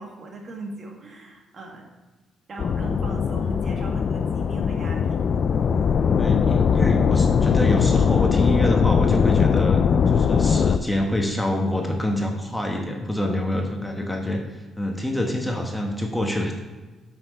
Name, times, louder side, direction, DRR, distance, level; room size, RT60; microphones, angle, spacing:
voice 1, 0.0-1.9 2.5-5.2, right 2 dB, 45° right, 1 dB, 1.8 m, -38 dB
sound 1, 2.6-10.8, left 6 dB, 55° left, 0.4 m, -20 dB
voice 2, 6.2-16.6, left 1 dB, 5° left, 2 dB, 1.2 m, -26 dB
7.7 x 5.9 x 5.4 m, 1.2 s
cardioid pair, 90°, 0 cm